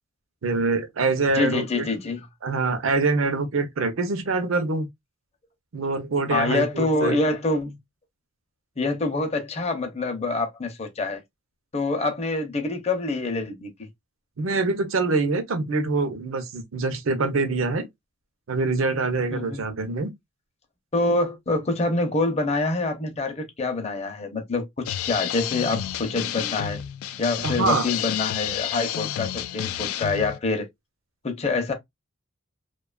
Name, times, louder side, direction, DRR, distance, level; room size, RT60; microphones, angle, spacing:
voice 1, 0.4-1.9 2.4-4.9 5.7-7.2 14.4-17.9 18.5-20.1 27.4-27.9, right 3 dB, 70° right, 0.6 m, -25 dB
voice 2, 1.3-2.3 6.3-7.8 8.8-11.2 11.7-13.7 19.3-19.6 20.9-26.8 27.2-30.7 31.2-31.7, left 3 dB, 30° left, 0.5 m, -26 dB
sound 1, 24.9-30.4, left 11 dB, 85° left, 0.3 m, -30 dB
2.7 x 2.3 x 2.2 m
head